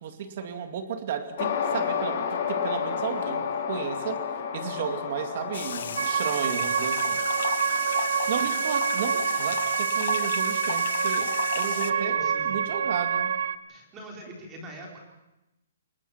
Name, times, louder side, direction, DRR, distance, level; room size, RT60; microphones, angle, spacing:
voice 1, 0.0-4.2 4.5-7.2 8.3-13.4, right 7 dB, 40° right, 7 dB, 2.3 m, -33 dB
sound 1, 1.4-9.9, left 7 dB, 40° left, 4.5 m, -32 dB
sound 2, 5.5-11.9, left 7 dB, 65° left, 1.0 m, -34 dB
sound 3, 6.0-13.6, right 7 dB, 75° right, 0.9 m, -27 dB
voice 2, 11.7-12.6 13.7-15.0, right 1 dB, 15° right, -1 dB, 4.0 m, -42 dB
29.0 x 19.5 x 5.8 m, 0.97 s
hypercardioid pair, 170°, 0 cm